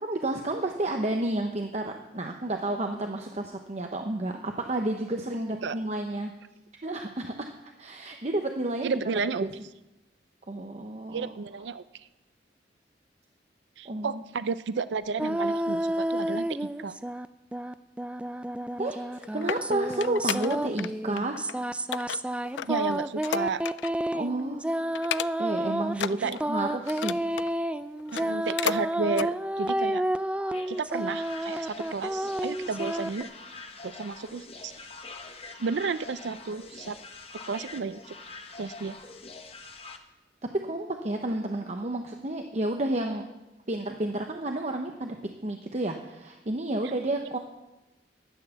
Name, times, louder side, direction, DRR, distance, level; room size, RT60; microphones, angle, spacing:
voice 1, 0.0-6.3 6.8-7.5 7.8-8.9 9.4-9.5 10.5-11.3 13.8-14.2 18.8-21.4 24.1-24.6 25.4-27.2 40.6-43.2 43.7-45.2 45.4-47.4, right 1 dB, 40° right, 3 dB, 0.8 m, -31 dB
voice 2, 8.8-9.5 11.1-11.8 13.8-17.0 22.7-23.6 26.2-26.4 28.1-30.0 30.7-33.3 33.8-34.9 35.6-37.0 37.5-38.1 38.6-39.0, right 4 dB, 80° right, 14 dB, 0.4 m, -32 dB
sound 1, 15.2-17.3 17.5-33.2, right 1 dB, 5° right, 0.3 m, -30 dB
sound 2, 18.9-20.9 21.2-21.5 21.9-24.1 24.4-24.6 24.9-25.6 25.9-27.5 28.0-28.8 29.1-29.3 29.8-29.9, left 10 dB, 80° left, 0.3 m, -34 dB
sound 3, 30.4-40.0, left 3 dB, 35° left, 1.1 m, -45 dB
12.0 x 9.2 x 7.0 m, 1.0 s
head